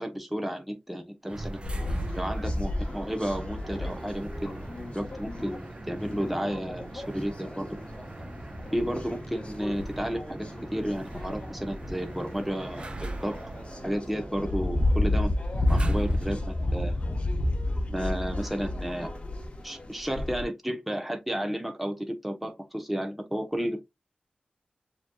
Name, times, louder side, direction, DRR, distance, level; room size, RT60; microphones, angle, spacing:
voice 1, 0.0-1.6 2.2-4.7 4.9-7.8 8.7-10.4 10.7-12.9 13.2-13.4 13.8-15.4 15.7-17.0 17.9-19.1 19.6-23.8, equal, 5° right, 0.9 m, -32 dB
sound 1, 1.3-16.4, right 2 dB, 35° right, 0.7 m, -41 dB
sound 2, 1.6-20.4, left 1 dB, 35° left, 1.0 m, -32 dB
7.2 x 2.9 x 2.3 m
wide cardioid pair, 105°, 3 cm